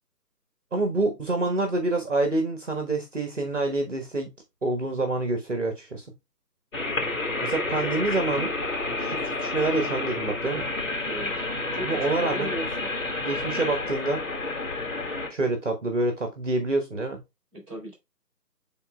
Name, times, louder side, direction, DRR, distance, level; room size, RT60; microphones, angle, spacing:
voice 1, 0.7-4.3 4.6-6.0 7.4-8.5 9.0-10.7 11.8-12.5 13.2-14.2 15.3-17.2, right 2 dB, 45° right, 5 dB, 1.3 m, -27 dB
sound 1, 6.7-15.3, left 2 dB, 50° left, 2.5 m, -30 dB
voice 2, 11.7-12.9 17.5-17.9, right 1 dB, 10° right, -11 dB, 3.1 m, -36 dB
10.5 x 3.9 x 2.3 m, 0.23 s
figure-of-eight pair, 170°, 49 cm